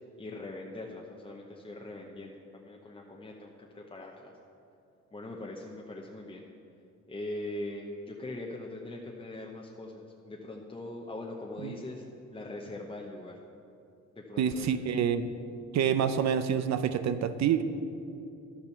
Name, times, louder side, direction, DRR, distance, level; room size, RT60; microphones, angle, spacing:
voice 1, 0.2-4.3 5.1-6.5 7.1-12.0 12.3-13.4 14.1-14.7, left 2 dB, 20° left, -1 dB, 0.9 m, -41 dB
voice 2, 14.4-15.3 15.7-17.6, right 8 dB, 65° right, 11 dB, 0.7 m, -27 dB
11.5 x 7.1 x 5.9 m, 2.6 s
cardioid pair, 90°, 30 cm